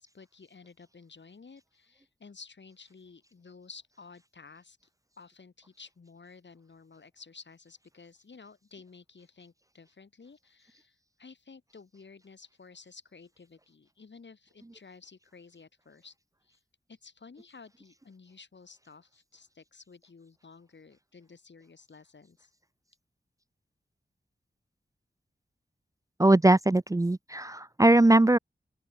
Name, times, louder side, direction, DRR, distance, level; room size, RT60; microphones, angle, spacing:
voice 1, 0.0-4.8 5.2-16.1 16.4-16.6 16.9-22.5, left 4 dB, 75° left, 6.3 m, -53 dB
voice 2, 26.2-28.4, right 2 dB, 20° right, 0.6 m, -21 dB
open air
wide cardioid pair, 90°, 18 cm